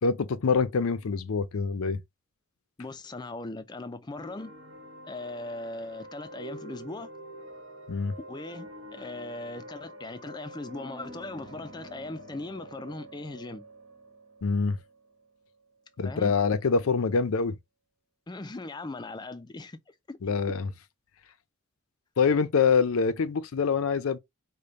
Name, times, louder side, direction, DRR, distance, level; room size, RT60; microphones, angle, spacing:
voice 1, 0.0-2.0 7.9-8.2 14.4-14.8 16.0-17.6 20.2-20.7 22.2-24.2, left 5 dB, 80° left, 0.5 m, -25 dB
voice 2, 2.8-4.6 5.0-7.1 8.3-13.7 16.0-16.3 18.3-20.2, left 2 dB, 20° left, 0.3 m, -39 dB
sound 1, 4.1-15.8, right 1 dB, 70° right, 1.3 m, -46 dB
5.0 x 2.2 x 4.0 m
head